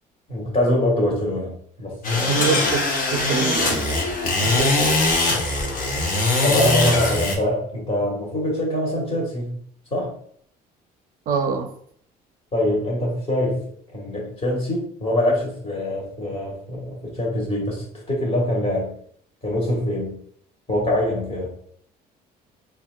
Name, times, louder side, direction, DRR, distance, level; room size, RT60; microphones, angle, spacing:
voice 1, 0.3-2.4 6.4-9.6 9.9-10.2 12.5-13.7 13.9-18.9 19.4-20.2 20.7-21.5, left 1 dB, 35° left, 1.5 m, -24 dB
sound 1, 2.0-7.3, left 2 dB, 55° left, 0.8 m, -21 dB
voice 2, 2.3-2.8 3.1-3.8 4.4-5.0 11.3-11.7, right 6 dB, 55° right, 0.4 m, -25 dB
4.0 x 2.4 x 2.2 m
cardioid pair, 110°, 17 cm